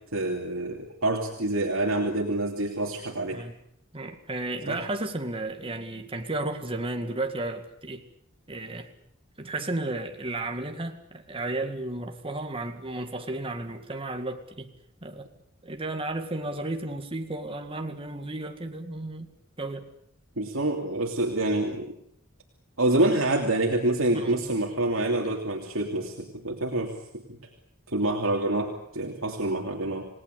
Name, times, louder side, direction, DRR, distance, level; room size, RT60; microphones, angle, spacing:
voice 1, 0.1-3.4 4.7-4.8 20.4-21.9 22.8-26.9 27.9-30.1, right 2 dB, 75° right, 1 dB, 3.0 m, -27 dB
voice 2, 3.9-8.0 8.5-8.9 9.4-14.7 15.0-15.3 15.6-19.3 19.6-19.9 24.1-24.3, right 2 dB, 25° right, 5 dB, 2.1 m, -33 dB
29.0 x 19.0 x 8.3 m, 0.74 s
head